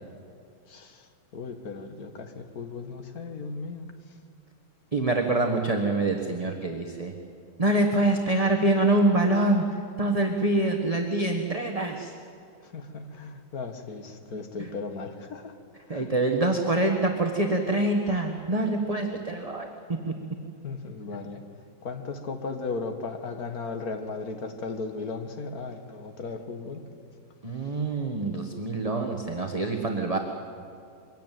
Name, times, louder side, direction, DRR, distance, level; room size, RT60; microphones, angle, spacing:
voice 1, 0.7-4.2 12.6-15.5 15.9-16.1 20.6-21.4 21.8-26.8 27.6-27.7, left 4 dB, 45° left, 7 dB, 2.0 m, -36 dB
voice 2, 4.9-7.1 7.6-12.1 14.6-14.7 15.9-19.7 20.1-20.2 27.4-30.2, right 2 dB, 20° right, 3 dB, 1.2 m, -25 dB
23.5 x 17.0 x 9.2 m, 2.5 s
omnidirectional pair, 2.3 m